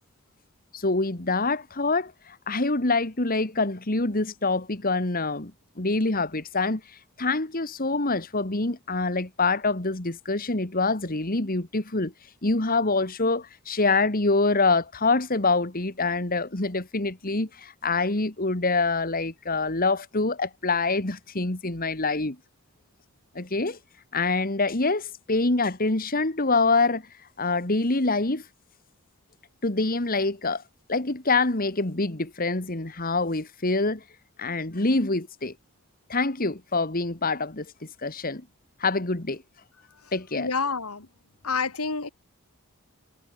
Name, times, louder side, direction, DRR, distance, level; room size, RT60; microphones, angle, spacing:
voice 1, 0.7-5.5 5.8-12.1 12.4-22.4 23.4-23.8 24.1-27.0 27.4-28.4 29.6-30.6 30.9-34.0 34.4-35.5 36.1-37.7 38.0-38.4 38.8-39.4 40.1-40.5, left 3 dB, 40° left, 2.0 m, -25 dB
voice 2, 40.0-41.1 41.4-42.1, left 4 dB, 80° left, 2.5 m, -29 dB
head